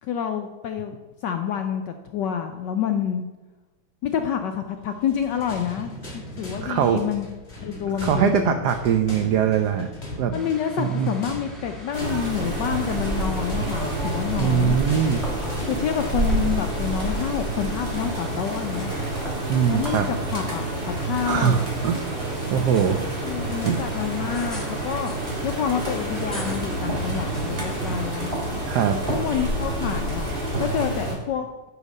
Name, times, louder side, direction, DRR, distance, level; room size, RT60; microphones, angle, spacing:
voice 1, 0.0-3.3 4.0-7.3 7.6-8.7 10.3-14.8 15.7-19.0 19.7-20.7 21.0-21.6 23.2-25.1 25.4-28.3 29.1-31.5, left 8 dB, 75° left, 6 dB, 1.0 m, -28 dB
sound 1, 4.9-16.4, left 2 dB, 30° left, 2.0 m, -39 dB
voice 2, 6.6-7.0 8.0-9.9 10.2-10.3 10.8-11.1 14.4-15.2 19.5-20.1 21.3-22.0 22.5-23.1 23.6-23.8 28.7-29.0, right 8 dB, 85° right, 7 dB, 0.9 m, -21 dB
sound 2, 10.3-28.3, equal, ahead, 1.3 m, -42 dB
sound 3, 11.9-31.2, right 1 dB, 25° right, 1.9 m, -28 dB
9.9 x 4.9 x 5.3 m, 1.1 s
omnidirectional pair, 2.4 m